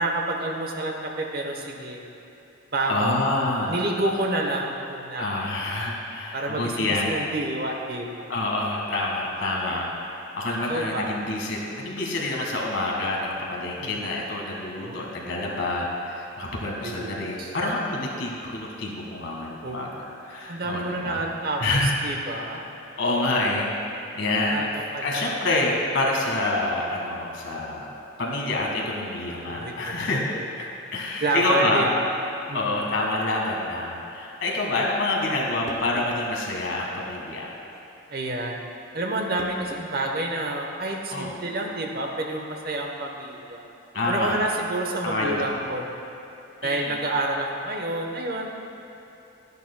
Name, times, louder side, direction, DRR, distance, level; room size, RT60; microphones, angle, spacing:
voice 1, 0.0-2.0 2.7-3.2 3.7-5.2 6.3-8.3 10.7-11.2 13.8-14.0 14.8-15.1 16.8-17.6 19.6-20.0 20.5-21.6 22.0-22.6 24.5-24.7 24.9-25.3 29.5-29.7 30.3-30.4 31.2-32.1 32.5-32.8 38.1-38.6 38.9-43.6 44.1-46.0 46.6-48.6, right 2 dB, 50° right, 1 dB, 0.9 m, -29 dB
voice 2, 2.9-3.8 5.1-7.2 8.3-21.3 21.6-22.0 22.4-22.7 23.0-24.6 25.0-27.9 28.2-30.2 30.9-31.9 32.5-37.6 41.1-41.3 43.9-44.4 45.0-45.6 46.6-47.0, left 2 dB, 65° left, -2 dB, 1.6 m, -27 dB
sound 1, 35.7-36.2 37.6-37.9 39.4-39.9 40.3-40.4 41.5-41.7, left 1 dB, 15° left, 0.7 m, -42 dB
12.5 x 10.5 x 2.2 m, 2.9 s
head